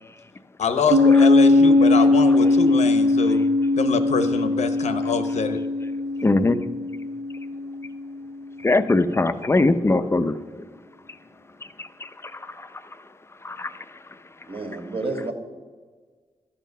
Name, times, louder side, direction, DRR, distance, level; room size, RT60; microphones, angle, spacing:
voice 1, 0.6-3.4 3.7-5.6, left 5 dB, 85° left, 8 dB, 0.9 m, -25 dB
Piano, 0.9-8.1, left 2 dB, 85° right, 1.2 m, -19 dB
voice 2, 6.2-6.6 8.6-10.4 11.8-12.7 13.4-13.7, left 2 dB, 20° left, 11 dB, 0.5 m, -22 dB
voice 3, 14.5-15.3, right 3 dB, 55° right, 3 dB, 1.9 m, -29 dB
12.5 x 7.3 x 5.5 m, 1.4 s
wide cardioid pair, 110°, 12 cm